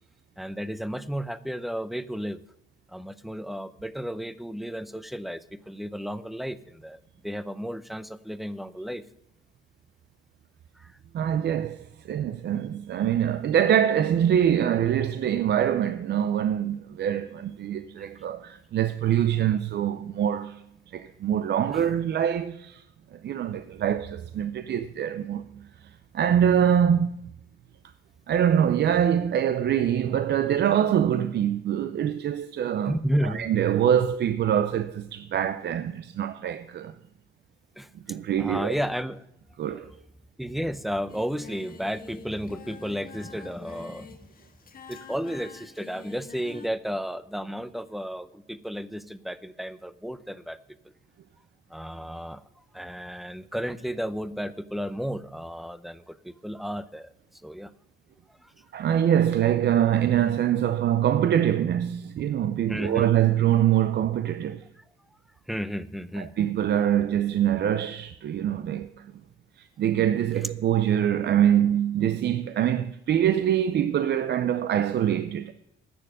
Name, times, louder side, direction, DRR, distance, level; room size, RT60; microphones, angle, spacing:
voice 1, 0.4-2.4 2.9-9.0 10.8-11.0 21.7-21.8 32.9-33.5 37.8-37.9 38.4-39.2 40.4-44.2 44.9-50.6 51.7-52.4 52.7-57.1 57.4-57.7 58.4-58.5 62.7-63.1 64.8-64.9 65.5-66.3, equal, ahead, 0.6 m, -33 dB
voice 2, 11.1-20.6 20.9-22.8 23.1-25.4 26.1-27.2 28.3-33.0 33.3-36.9 38.1-38.7 39.6-39.9 58.7-64.6 66.2-69.1 69.6-75.5, right 10 dB, 60° right, 0.6 m, -24 dB
Singing, 41.1-46.7, left 5 dB, 45° left, 1.6 m, -47 dB
10.0 x 6.9 x 8.9 m
cardioid pair, 90°, 20 cm